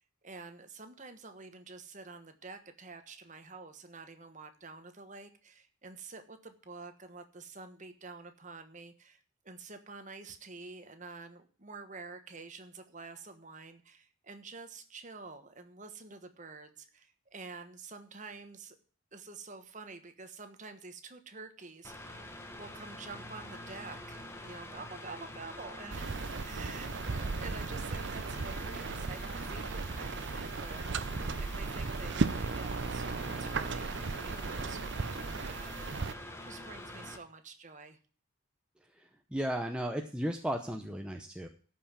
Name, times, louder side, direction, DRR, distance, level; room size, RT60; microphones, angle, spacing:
voice 1, 0.2-18.8 19.1-22.3 22.6-38.0, right 4 dB, 35° right, 8 dB, 1.3 m, -48 dB
Mechanical fan, 21.8-37.2, left 1 dB, 10° left, 1.3 m, -46 dB
sound 1, 25.9-36.1, right 4 dB, 55° right, 0.6 m, -36 dB
voice 2, 38.9-41.5, equal, 5° right, 3 dB, 0.8 m, -35 dB
13.0 x 5.7 x 7.3 m, 0.42 s
head